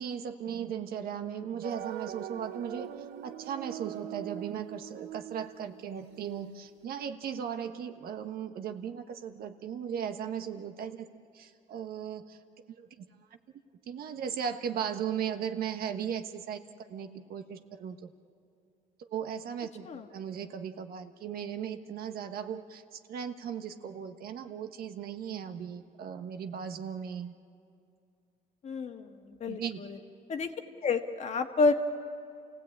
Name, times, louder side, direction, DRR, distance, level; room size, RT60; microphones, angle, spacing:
voice 1, 0.0-11.1 11.3-12.4 12.8-13.0 13.9-16.6 16.9-18.1 19.1-27.3 29.5-29.8, right 8 dB, 60° right, 7 dB, 1.3 m, -37 dB
sound 1, 1.6-6.5, right 11 dB, 80° right, 0.8 m, -42 dB
voice 2, 28.6-29.1 29.4-30.0 30.3-30.5 30.8-31.7, left 4 dB, 40° left, 6 dB, 1.6 m, -29 dB
28.5 x 17.0 x 8.6 m, 2.5 s
cardioid pair, 110°, 17 cm